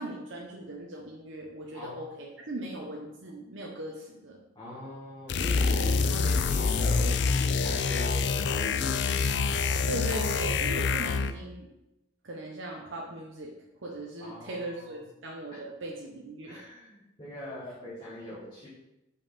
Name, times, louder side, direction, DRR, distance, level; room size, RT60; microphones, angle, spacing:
voice 1, 0.0-4.4 5.8-6.2 9.9-11.7 12.2-13.5 13.8-16.6, right 1 dB, 80° right, -2 dB, 0.9 m, -39 dB
voice 2, 4.5-9.2 14.2-14.7 16.4-18.7, left 1 dB, 25° left, -8 dB, 1.6 m, -40 dB
sound 1, 5.3-11.4, left 4 dB, 60° left, 0.4 m, -26 dB
5.6 x 5.2 x 5.1 m, 0.93 s
head